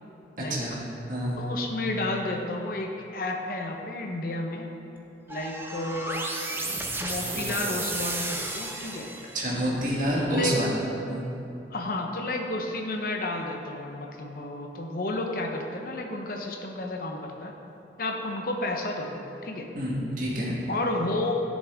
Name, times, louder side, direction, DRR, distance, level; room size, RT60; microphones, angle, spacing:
voice 1, 0.4-0.8 1.1-1.5 9.3-10.7 11.1-11.3 19.7-20.6, equal, 50° right, -5 dB, 1.7 m, -28 dB
voice 2, 1.4-4.7 5.3-6.3 7.0-9.1 10.3-10.7 11.7-17.5 18.0-19.7 20.7-21.4, left 2 dB, 55° left, 2 dB, 0.8 m, -31 dB
sound 1, 5.3-9.6, right 2 dB, 15° right, 0.6 m, -33 dB
11.5 x 6.5 x 3.6 m, 2.9 s
head